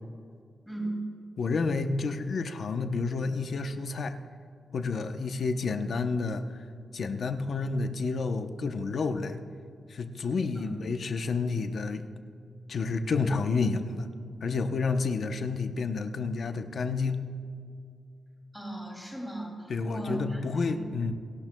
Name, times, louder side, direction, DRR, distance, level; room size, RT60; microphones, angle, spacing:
voice 1, 0.7-1.0 10.5-10.7 18.5-20.9, right 2 dB, ahead, -1 dB, 2.7 m, -37 dB
voice 2, 1.4-4.2 4.7-6.6 6.9-9.4 9.9-12.0 12.7-14.1 14.4-17.2 19.7-21.1, left 4 dB, 55° left, 7 dB, 0.8 m, -30 dB
27.0 x 12.5 x 2.3 m, 2.4 s
wide cardioid pair, 155°, 0 cm